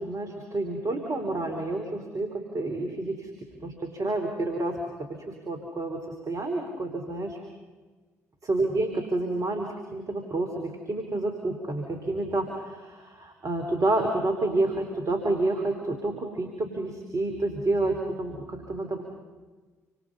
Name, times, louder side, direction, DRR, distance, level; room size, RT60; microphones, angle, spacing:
voice 1, 0.0-3.3 3.6-4.8 5.1-7.4 8.4-19.0, right 2 dB, 45° right, 3 dB, 4.2 m, -29 dB
28.5 x 26.5 x 5.6 m, 1.3 s
figure-of-eight pair, 45°, 8 cm